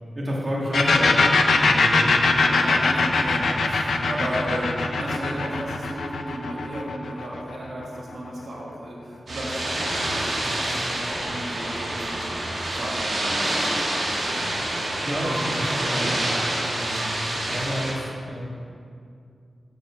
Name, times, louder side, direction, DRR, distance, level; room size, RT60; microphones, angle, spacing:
voice 1, 0.2-1.2 1.5-2.1 14.8-17.1 17.5-18.5, equal, 35° right, -5 dB, 2.0 m, -29 dB
sound 1, 0.7-8.2, left 3 dB, 85° left, 0.6 m, -21 dB
voice 2, 2.4-12.4 12.7-14.3, right 1 dB, 80° right, -5 dB, 1.9 m, -34 dB
sound 2, 9.3-17.9, right 1 dB, 65° right, 1.8 m, -27 dB
6.9 x 6.6 x 5.7 m, 2.4 s
wide cardioid pair, 105°, 0 cm